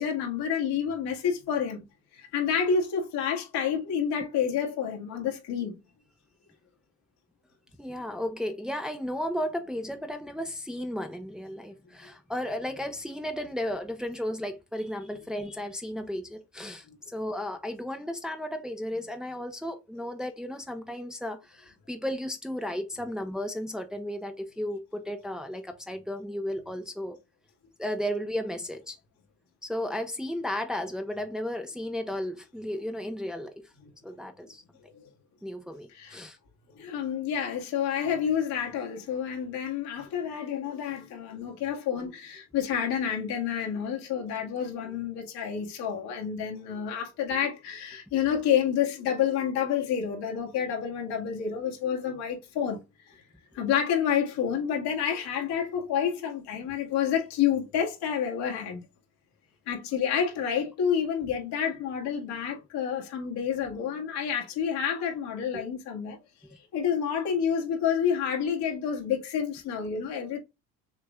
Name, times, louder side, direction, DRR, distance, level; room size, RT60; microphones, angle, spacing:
voice 1, 0.0-1.8 2.1-5.8 35.9-36.2 36.8-52.8 53.5-58.8 59.7-66.2 66.7-70.4, left 8 dB, 70° left, 2.0 m, -29 dB
voice 2, 7.8-16.8 17.1-27.2 27.8-29.0 29.6-33.5 34.0-34.6 35.4-36.4 65.5-65.6, left 1 dB, ahead, 0.8 m, -34 dB
6.5 x 3.4 x 2.4 m
supercardioid pair, 80°, 41 cm